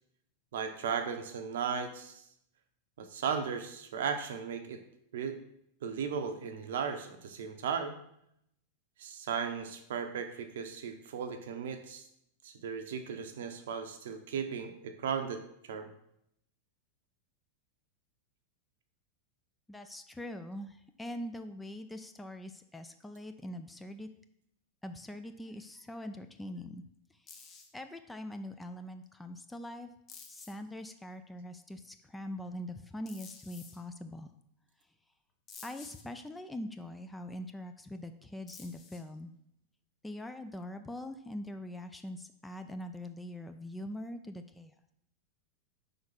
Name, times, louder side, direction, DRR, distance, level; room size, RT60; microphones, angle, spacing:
voice 1, 0.5-2.2 3.0-4.8 5.1-5.4 5.8-8.0 9.0-12.0 12.4-15.9, right 6 dB, 60° right, 7 dB, 0.8 m, -36 dB
voice 2, 19.7-24.1 24.8-26.8 27.3-29.9 30.3-34.3 35.6-39.3 40.0-44.7, left 1 dB, 5° left, 7 dB, 0.5 m, -43 dB
sound 1, 27.3-27.7 29.0-29.1 30.1-30.7 33.1-33.8 35.5-36.0 38.5-39.1, left 5 dB, 30° left, 1.1 m, -51 dB
5.1 x 4.0 x 5.8 m, 0.75 s
figure-of-eight pair, 90°, 0 cm